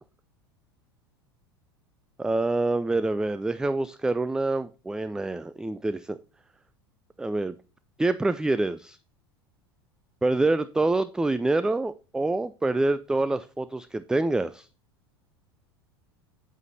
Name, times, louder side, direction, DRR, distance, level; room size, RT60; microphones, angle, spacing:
voice 1, 2.2-6.2 7.2-7.6 8.0-9.0 10.2-14.7, right 2 dB, 5° right, 14 dB, 0.3 m, -26 dB
9.0 x 8.3 x 2.8 m, 0.33 s
figure-of-eight pair, 80°, 13 cm